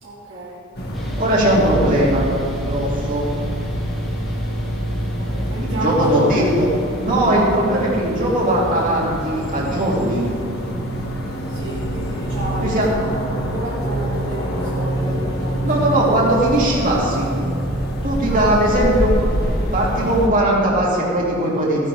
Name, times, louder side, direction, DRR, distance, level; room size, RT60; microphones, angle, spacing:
voice 1, 0.0-0.7 5.2-6.4 11.5-13.1 13.4-16.1 18.3-18.8, right 1 dB, 65° right, -6 dB, 2.1 m, -31 dB
sound 1, 0.7-20.3, equal, 50° left, 2.1 m, -25 dB
sound 2, 0.9-15.3, equal, ahead, 1.8 m, -40 dB
voice 2, 1.2-2.3 2.6-3.3 5.6-6.7 7.0-10.3 12.6-12.9 15.6-17.3 18.0-21.9, right 1 dB, 40° right, -5 dB, 3.0 m, -19 dB
16.0 x 11.0 x 3.7 m, 2.7 s
head